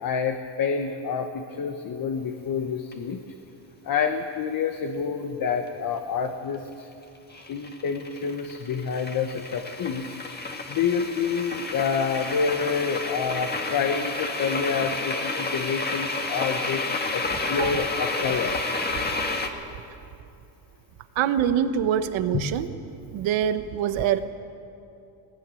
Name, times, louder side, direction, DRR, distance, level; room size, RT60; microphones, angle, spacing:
voice 1, 0.0-3.2 3.9-6.6 7.5-10.0 10.7-16.8 17.1-17.2 17.5-18.5 22.3-22.5, left 6 dB, 45° left, 5 dB, 1.4 m, -28 dB
sound 1, 2.9-3.0 7.3-19.5, left 3 dB, 20° left, 1.9 m, -30 dB
voice 2, 21.1-22.7 23.1-24.2, right 9 dB, 70° right, 10 dB, 1.4 m, -24 dB
19.5 x 19.0 x 9.2 m, 2.6 s
cardioid pair, 120°, 48 cm